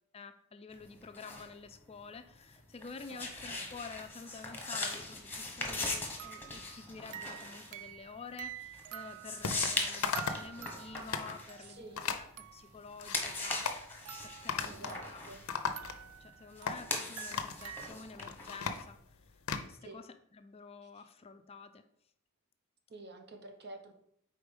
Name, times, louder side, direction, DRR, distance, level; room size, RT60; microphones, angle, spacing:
voice 1, 0.1-11.8 12.2-13.7 14.2-15.2 16.2-20.1 20.3-21.8, left 4 dB, 30° left, 9 dB, 0.4 m, -49 dB
sound 1, 0.7-12.5 12.8-18.9, left 2 dB, 10° left, 1.1 m, -40 dB
voice 2, 3.1-3.7 11.6-12.0 14.6-15.5 19.8-20.0 20.8-21.1 22.9-23.9, right 2 dB, 50° right, 6 dB, 0.9 m, -50 dB
sound 2, 5.6-5.8 6.2-12.0 12.4-12.8 13.2-15.3 15.7-17.9, right 11 dB, 75° right, 0.3 m, -49 dB
sound 3, 9.4-9.7 10.0-10.5 10.9-11.3 12.0-12.3 12.8-13.2 13.5-13.8 14.5-15.0 15.3-16.2 16.7-16.8 17.3-17.6 18.1-19.7, left 6 dB, 85° left, 0.6 m, -36 dB
4.8 x 4.3 x 5.2 m, 0.73 s
head